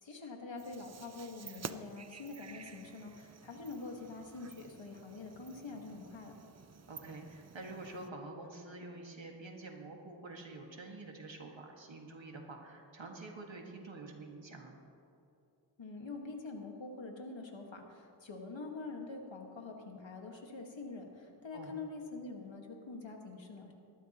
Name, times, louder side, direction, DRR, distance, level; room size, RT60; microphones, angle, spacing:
voice 1, 0.0-6.4 15.8-23.7, left 3 dB, 80° left, 2 dB, 1.7 m, -45 dB
sound 1, 0.6-8.1, right 5 dB, 35° right, 0.5 m, -51 dB
voice 2, 6.9-14.8 21.5-21.7, right 2 dB, 80° right, 1 dB, 1.9 m, -47 dB
19.5 x 13.0 x 3.0 m, 2.7 s
wide cardioid pair, 70°, 45 cm